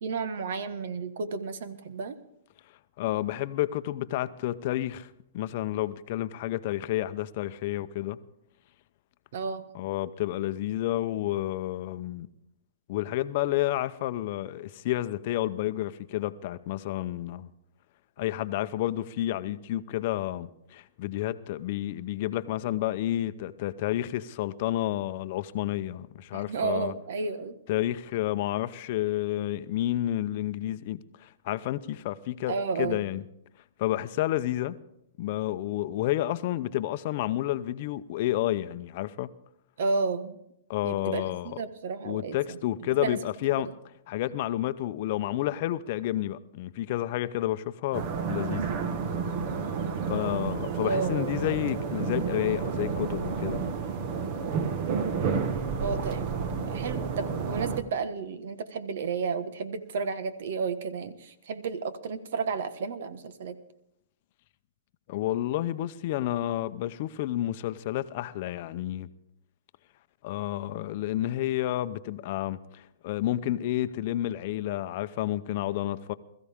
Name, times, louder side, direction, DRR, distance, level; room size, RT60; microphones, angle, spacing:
voice 1, 0.0-2.2 9.3-9.6 26.3-27.5 32.5-33.0 39.8-40.4 40.8-43.2 50.8-51.4 55.8-56.3 56.6-63.6, right 4 dB, 65° right, 1.4 m, -32 dB
voice 2, 3.0-8.2 9.7-12.3 12.9-17.5 18.2-26.9 27.7-33.2 33.8-34.8 35.2-39.3 40.7-41.6 42.0-43.7 44.1-48.7 50.1-53.7 65.1-69.1 70.2-76.1, left 14 dB, 50° left, 0.7 m, -30 dB
sound 1, 47.9-57.8, right 6 dB, 45° right, 1.5 m, -30 dB
21.0 x 14.0 x 3.7 m
hypercardioid pair, 140°, 0 cm